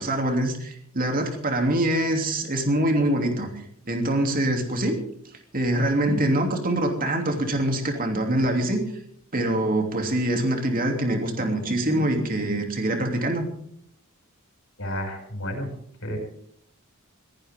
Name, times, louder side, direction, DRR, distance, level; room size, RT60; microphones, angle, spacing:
voice 1, 0.0-5.0 5.5-8.8 9.3-13.5, right 1 dB, 40° right, 3 dB, 3.0 m, -24 dB
voice 2, 14.8-15.7 16.0-16.2, equal, 60° left, 2 dB, 6.4 m, -31 dB
21.5 x 18.0 x 3.7 m, 0.64 s
head